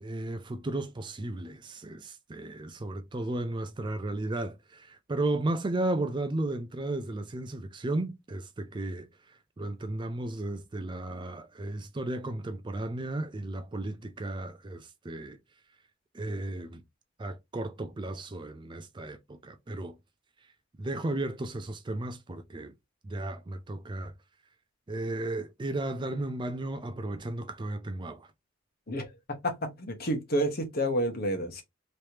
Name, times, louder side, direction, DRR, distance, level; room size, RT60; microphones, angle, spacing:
voice 1, 0.0-9.1 9.6-15.4 16.1-16.8 17.2-20.0 20.8-22.7 23.0-24.1 24.9-28.3, right 2 dB, 25° right, 0.4 m, -34 dB
voice 2, 29.4-31.6, equal, 50° left, 1.1 m, -29 dB
3.2 x 3.2 x 2.7 m
head